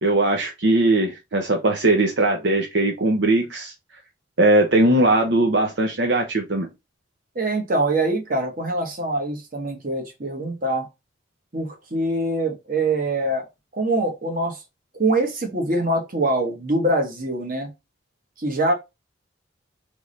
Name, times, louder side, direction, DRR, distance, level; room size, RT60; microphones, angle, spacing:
voice 1, 0.0-3.7 4.4-6.7, right 2 dB, 65° right, 0.8 m, -19 dB
voice 2, 7.3-10.9 11.5-13.5 13.7-14.6 14.9-17.7 18.4-18.7, right 2 dB, 50° right, 1.2 m, -24 dB
3.5 x 3.2 x 3.9 m
head